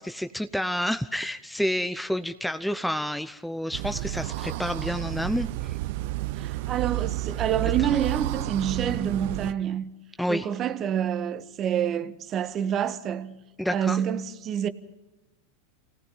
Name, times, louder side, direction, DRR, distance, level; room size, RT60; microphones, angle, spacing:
voice 1, 0.0-5.8 10.2-10.5 13.6-14.0, equal, ahead, 0.7 m, -29 dB
sound 1, 3.7-9.5, right 15 dB, 60° right, 0.7 m, -31 dB
voice 2, 6.4-9.9 10.3-13.4 13.7-14.7, right 9 dB, 40° right, 1.3 m, -27 dB
26.0 x 18.0 x 5.6 m
hypercardioid pair, 95°, 0 cm